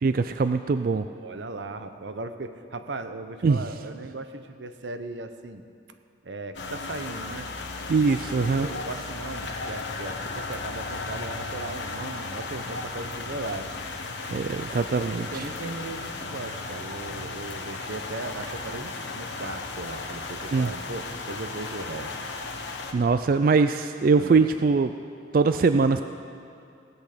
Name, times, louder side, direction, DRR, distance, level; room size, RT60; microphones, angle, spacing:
voice 1, 0.0-1.0 3.4-3.6 7.9-8.7 14.3-15.4 20.5-20.7 22.9-24.9 25.3-26.0, right 4 dB, 50° right, 9 dB, 0.3 m, -22 dB
voice 2, 1.1-5.6 6.2-7.5 8.6-13.7 15.0-22.2 24.1-24.5, right 2 dB, 90° right, 9 dB, 0.9 m, -37 dB
sound 1, 6.5-22.9, left 3 dB, 90° left, 1.2 m, -35 dB
17.5 x 8.1 x 6.7 m, 2.5 s
head